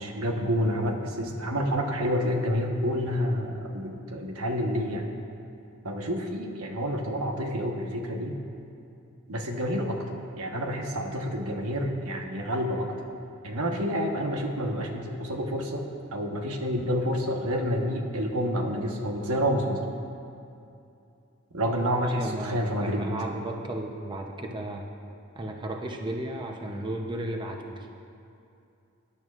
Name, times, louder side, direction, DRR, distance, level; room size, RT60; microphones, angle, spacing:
voice 1, 0.0-5.1 5.8-8.4 9.3-12.9 13.4-15.8 16.1-19.8 21.5-23.1, equal, 85° right, 2 dB, 1.1 m, -29 dB
voice 2, 21.7-24.9 25.3-27.9, right 1 dB, 20° right, 2 dB, 0.7 m, -34 dB
19.5 x 10.5 x 2.4 m, 2.6 s
head